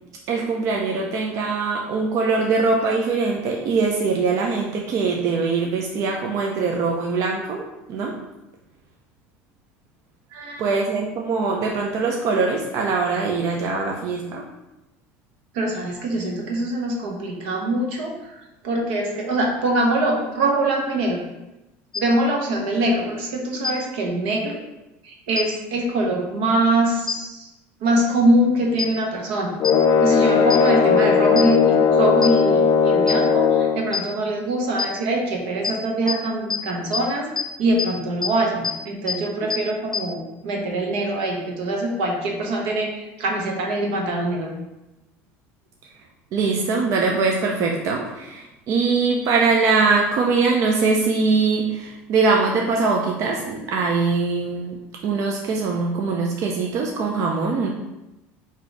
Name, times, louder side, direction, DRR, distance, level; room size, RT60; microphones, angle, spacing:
voice 1, 0.3-8.2 10.6-14.4 46.3-54.8 55.0-57.7, right 4 dB, 55° right, 0 dB, 0.6 m, -22 dB
voice 2, 10.3-10.7 15.5-21.2 21.9-24.6 25.0-27.5 27.8-29.5 30.0-37.3 37.6-44.5, right 1 dB, 80° right, 0 dB, 1.1 m, -23 dB
sound 1, 21.9-22.0 23.6-23.7 25.4-25.5 27.1-27.2 28.8-28.9 29.6-29.7 30.5-30.6 31.4-31.5 32.2-32.3 33.1-33.2 33.9-34.0 34.8-34.9 35.6-35.7 36.1-36.2 36.5-36.6 36.9-37.0 37.4-37.5 37.8-37.9 38.2-38.3 38.6-38.7 39.1-39.2 39.5-39.6 39.9-40.0, left 6 dB, 5° left, 0.5 m, -23 dB
sound 2, 29.6-33.9, left 6 dB, 50° left, 0.6 m, -17 dB
4.0 x 2.8 x 4.5 m, 0.97 s
supercardioid pair, 110°, 7 cm